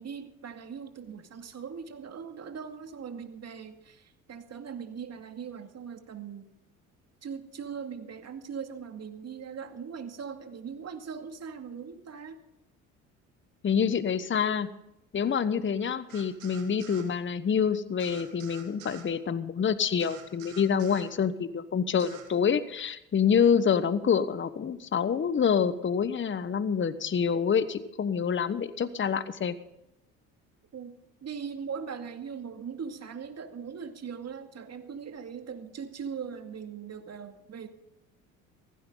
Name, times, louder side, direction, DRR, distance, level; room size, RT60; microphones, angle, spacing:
voice 1, 0.0-6.5 7.2-12.4 23.6-24.2 30.7-31.0 31.2-37.7, right 6 dB, 40° right, 7 dB, 2.3 m, -40 dB
voice 2, 13.6-14.7 15.1-29.5, left 7 dB, 30° left, 14 dB, 1.1 m, -27 dB
sound 1, 16.1-17.1 18.0-19.1 20.0-21.1 22.0-22.3, right 7 dB, 85° right, 2.1 m, -48 dB
16.5 x 16.0 x 3.9 m, 0.85 s
hypercardioid pair, 60°, 39 cm